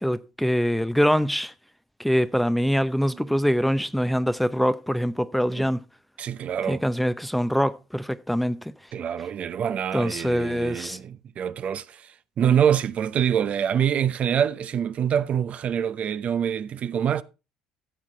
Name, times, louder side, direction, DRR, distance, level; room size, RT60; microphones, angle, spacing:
voice 1, 0.0-1.5 2.0-5.8 6.7-8.7 9.9-11.0, equal, ahead, 0.7 m, -24 dB
voice 2, 6.2-6.8 8.9-17.2, right 8 dB, 50° right, 0.7 m, -25 dB
13.5 x 7.4 x 3.2 m
hypercardioid pair, 70°, 3 cm